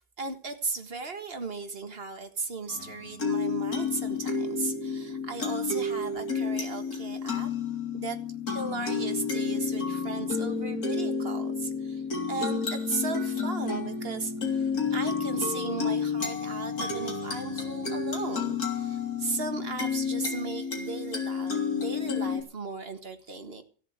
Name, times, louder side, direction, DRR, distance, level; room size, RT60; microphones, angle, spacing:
voice 1, 0.2-7.5 7.9-8.2 8.5-23.6, right 4 dB, 35° right, 7 dB, 1.8 m, -36 dB
sound 1, 2.7-22.4, left 5 dB, 60° left, 3.8 m, -31 dB
17.0 x 7.3 x 8.1 m, 0.42 s
omnidirectional pair, 1.7 m